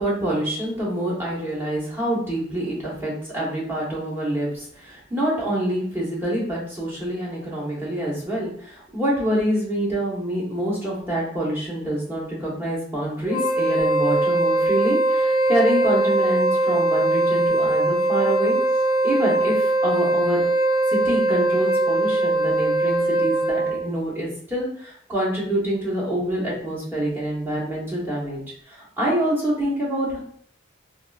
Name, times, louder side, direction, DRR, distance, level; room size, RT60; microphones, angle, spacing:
voice 1, 0.0-18.6 19.0-20.5 20.9-28.4 28.7-30.2, right 1 dB, 10° right, -6 dB, 1.0 m, -26 dB
Wind instrument woodwind instrument, 13.3-23.8, right 2 dB, 20° left, 0.5 m, -21 dB
3.5 x 2.5 x 2.3 m, 0.63 s
head